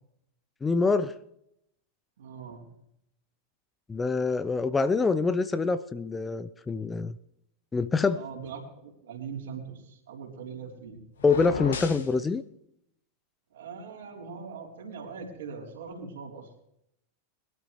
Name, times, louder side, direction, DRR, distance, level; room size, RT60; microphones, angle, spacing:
voice 1, 0.6-1.1 3.9-7.2 7.7-8.2 11.2-12.4, left 4 dB, 15° left, 14 dB, 0.5 m, -25 dB
voice 2, 2.2-2.7 8.2-11.0 13.5-16.5, right 5 dB, 60° right, 0 dB, 3.7 m, -41 dB
sound 1, 11.2-12.1, left 5 dB, 65° left, 1.8 m, -34 dB
22.0 x 12.5 x 3.2 m, 0.77 s
figure-of-eight pair, 90°, 0 cm